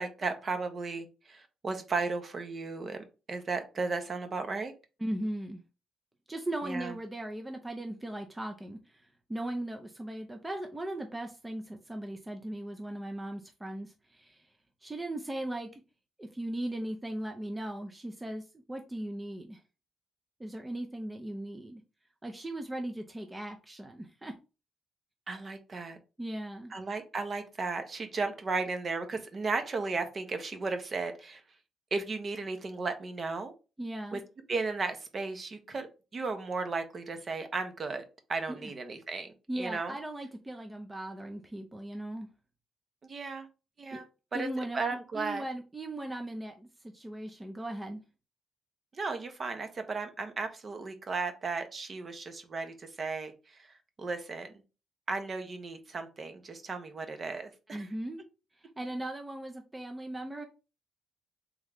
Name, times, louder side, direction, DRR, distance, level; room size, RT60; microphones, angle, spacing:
voice 1, 0.0-4.7 6.6-6.9 25.3-26.0 26.7-31.4 31.9-33.5 34.1-34.2 34.5-35.9 36.1-38.0 38.3-39.9 43.1-43.5 43.8-44.0 44.4-45.4 48.9-53.7 54.0-54.5 55.1-57.9, right 4 dB, 40° right, 0.8 m, -35 dB
voice 2, 5.0-5.6 6.3-14.5 14.8-15.8 16.2-19.6 20.4-21.8 22.2-24.3 26.2-26.7 33.8-34.2 38.5-38.7 39.5-42.3 43.9-44.0 44.3-44.8 45.1-46.7 46.9-48.0 57.7-58.2 58.6-60.5, right 1 dB, 15° right, 0.6 m, -38 dB
3.6 x 3.1 x 3.5 m
cardioid pair, 90°, 0 cm